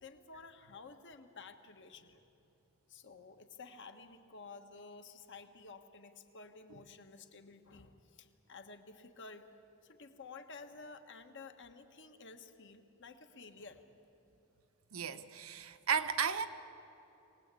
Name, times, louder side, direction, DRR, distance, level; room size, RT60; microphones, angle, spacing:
voice 1, 0.0-2.2 2.9-9.4 9.8-13.8, left 4 dB, 55° left, 6 dB, 1.4 m, -52 dB
voice 2, 14.9-16.5, right 7 dB, 70° right, 10 dB, 1.0 m, -34 dB
23.0 x 19.0 x 8.4 m, 3.0 s
head